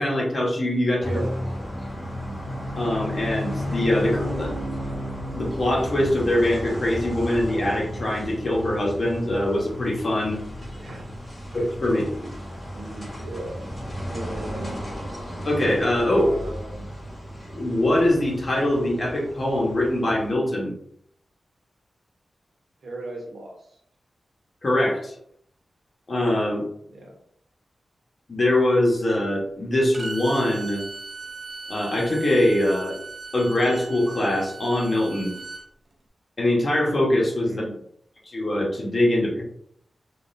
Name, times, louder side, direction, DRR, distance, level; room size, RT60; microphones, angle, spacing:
voice 1, 0.0-1.2 2.7-4.5 5.3-10.4 11.5-12.0 15.4-16.3 17.5-20.7 24.6-25.1 26.1-26.6 28.3-30.8 31.7-33.0 33.3-35.3 36.4-37.6 38.2-39.4, left 1 dB, 40° left, -3 dB, 1.2 m, -23 dB
sound 1, 1.0-20.3, equal, 15° left, 1.2 m, -34 dB
voice 2, 1.0-1.4 10.8-11.2 11.8-12.3 12.7-13.6 14.1-14.8 16.1-16.9 22.8-23.7 26.9-27.2 37.4-37.8, right 1 dB, 75° right, -1 dB, 0.9 m, -37 dB
Bowed string instrument, 29.9-35.6, right 4 dB, 55° right, 0.7 m, -38 dB
3.8 x 2.5 x 2.6 m, 0.67 s
wide cardioid pair, 115°, 0 cm